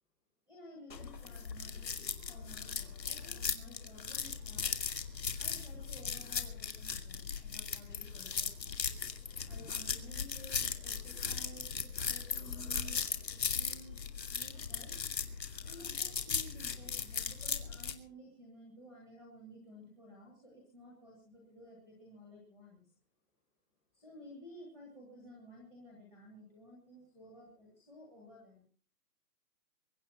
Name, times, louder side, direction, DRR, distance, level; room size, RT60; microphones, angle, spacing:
voice 1, 0.5-1.8 2.3-4.7 5.3-8.7 9.4-13.0 13.5-15.0 15.6-22.9 23.9-28.6, equal, 5° left, -4 dB, 1.4 m, -54 dB
sound 1, 0.9-17.9, left 6 dB, 80° left, 2.6 m, -38 dB
23.0 x 9.7 x 5.5 m, 0.40 s
hypercardioid pair, 175°, 49 cm